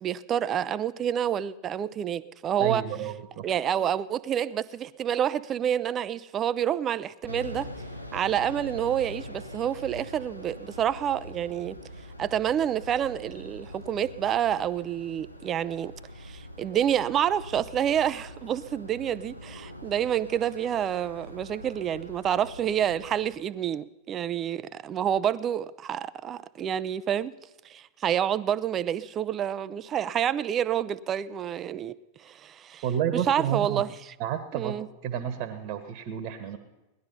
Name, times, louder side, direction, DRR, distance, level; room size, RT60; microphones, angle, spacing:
voice 1, 0.0-2.8 3.4-7.7 8.1-11.8 12.2-15.9 16.2-27.3 27.6-31.9 32.2-32.8 33.1-33.9 34.5-34.9, right 9 dB, 30° right, 0.5 m, -28 dB
voice 2, 2.6-3.5 32.8-33.8 34.2-34.8 35.0-36.6, right 9 dB, 45° right, 1.3 m, -30 dB
sound 1, 7.3-23.3, left 1 dB, 85° left, 1.0 m, -43 dB
18.5 x 11.5 x 5.6 m
figure-of-eight pair, 90°, 0 cm